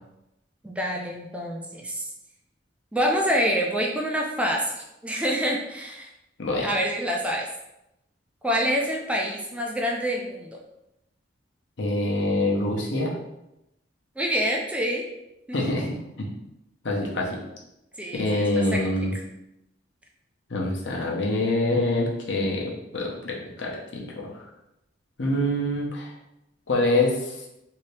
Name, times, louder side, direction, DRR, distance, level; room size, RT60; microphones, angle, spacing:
voice 1, 0.6-2.0 2.9-6.1 6.6-7.5 8.4-10.5 14.2-15.0 15.5-15.7 18.0-18.4 18.8-18.9, equal, 5° right, 0 dB, 0.3 m, -26 dB
voice 2, 6.4-6.7 11.8-13.2 15.5-15.9 16.2-16.3 16.8-17.4 18.1-19.2 20.5-24.4 25.2-26.1 26.7-27.5, left 1 dB, 70° left, -2 dB, 0.8 m, -25 dB
2.8 x 2.7 x 3.2 m, 0.87 s
head